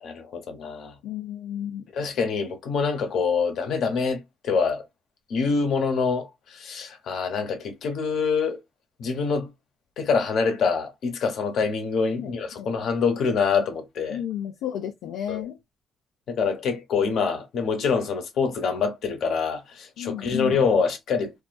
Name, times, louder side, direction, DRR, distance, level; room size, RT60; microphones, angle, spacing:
voice 1, 0.0-0.9 1.9-4.8 5.3-8.6 9.0-9.5 10.0-14.2 15.3-15.5 16.3-21.3, left 5 dB, 70° left, 0.9 m, -25 dB
voice 2, 1.0-1.8 12.2-12.7 14.1-15.6 20.0-20.5, left 10 dB, 90° left, 0.4 m, -32 dB
2.5 x 2.4 x 2.2 m
cardioid pair, 90°, 0 cm